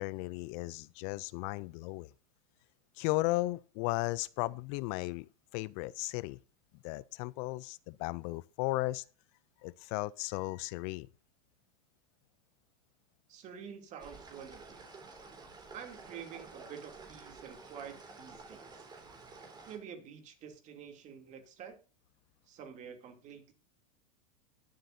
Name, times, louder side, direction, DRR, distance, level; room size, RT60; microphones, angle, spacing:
voice 1, 0.0-2.1 3.0-6.4 6.8-9.0 9.6-11.1, left 20 dB, 50° left, 0.4 m, -35 dB
voice 2, 13.3-14.9 15.7-18.9 19.7-21.8 22.5-23.5, right 7 dB, 40° right, 2.8 m, -48 dB
sound 1, 14.0-19.8, right 4 dB, 20° right, 3.6 m, -51 dB
20.5 x 7.7 x 2.7 m
hypercardioid pair, 110°, 19 cm